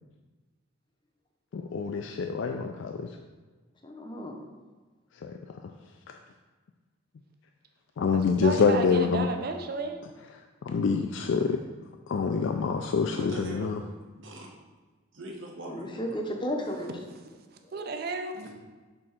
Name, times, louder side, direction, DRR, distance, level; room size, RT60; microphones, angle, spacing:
voice 1, 1.5-3.1 5.2-5.6 6.1-6.2 8.0-9.3 10.6-11.6 12.1-13.8, left 5 dB, 60° left, 4 dB, 0.3 m, -26 dB
voice 2, 3.8-4.4 15.7-16.9 17.7-17.8, equal, 20° left, 2 dB, 0.6 m, -34 dB
voice 3, 8.1-10.0 16.6-17.3 17.7-18.4, right 3 dB, 45° right, 5 dB, 0.5 m, -33 dB
voice 4, 13.1-13.7 14.2-14.5 15.1-16.2 18.3-18.5, right 2 dB, 65° right, -1 dB, 1.1 m, -41 dB
6.6 x 3.6 x 4.3 m, 1.4 s
head